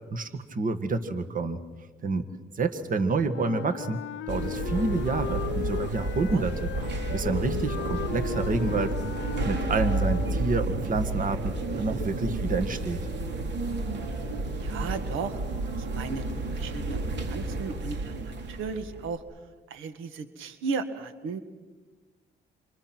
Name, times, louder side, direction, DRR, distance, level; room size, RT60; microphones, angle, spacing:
voice 1, 0.1-1.6 2.0-2.3 2.5-4.0 4.3-6.7 7.1-8.9 9.5-13.0, right 3 dB, 45° right, 8 dB, 1.8 m, -28 dB
Wind instrument woodwind instrument, 3.3-10.7, left 13 dB, 85° left, 0.7 m, -37 dB
sound 1, 4.3-19.2, right 2 dB, 60° right, 3.2 m, -31 dB
voice 2, 14.6-15.4 15.8-16.2 16.5-19.2 19.7-21.4, right 5 dB, 90° right, 10 dB, 1.7 m, -35 dB
28.0 x 27.0 x 6.1 m, 1.3 s
cardioid pair, 90°, 20 cm